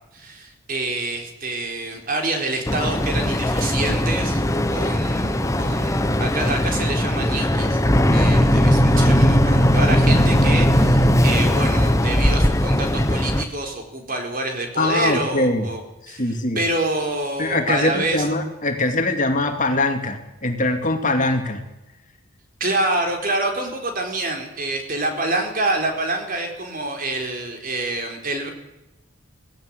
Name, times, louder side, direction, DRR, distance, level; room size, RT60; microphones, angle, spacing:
voice 1, 0.1-4.4 4.7-7.8 8.1-15.8 16.1-16.2 16.5-18.2 22.6-28.5, right 2 dB, 40° right, 3 dB, 4.2 m, -27 dB
Boat Water vehicle, 2.7-13.4, equal, 15° left, 1.2 m, -18 dB
voice 2, 14.8-15.7 16.1-16.6 17.4-21.6, left 2 dB, 35° left, 4 dB, 2.5 m, -22 dB
17.5 x 17.0 x 9.7 m, 0.94 s
head